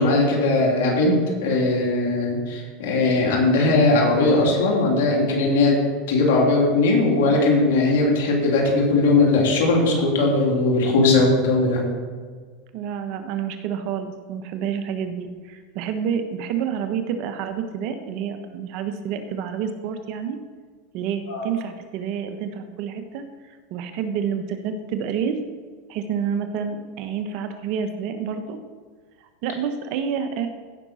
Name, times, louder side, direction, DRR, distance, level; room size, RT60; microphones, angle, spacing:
voice 1, 0.0-5.8 6.1-11.8 21.3-21.4, left 2 dB, 75° left, -1 dB, 3.0 m, -19 dB
voice 2, 12.7-20.4 20.9-23.2 23.7-25.4 25.9-28.6 29.4-30.5, right 7 dB, 55° right, 7 dB, 1.1 m, -28 dB
15.5 x 6.1 x 4.3 m, 1.5 s
supercardioid pair, 120°, 0 cm